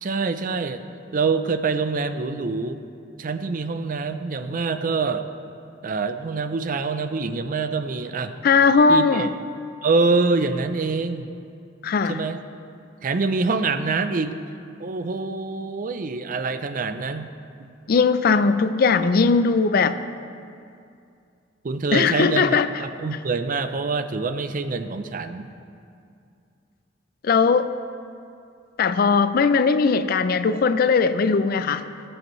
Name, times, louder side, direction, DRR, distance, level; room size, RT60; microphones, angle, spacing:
voice 1, 0.0-0.8 1.1-2.8 3.2-5.3 5.8-8.3 8.9-9.3 9.8-11.3 12.1-12.4 13.0-14.4 14.8-17.3 21.6-25.5, right 4 dB, 50° right, 10 dB, 0.5 m, -25 dB
voice 2, 8.4-9.3 11.8-12.2 17.9-20.0 21.9-22.7 27.2-27.7 28.8-31.8, left 5 dB, 55° left, 12 dB, 0.4 m, -19 dB
18.5 x 7.9 x 3.1 m, 2.4 s
head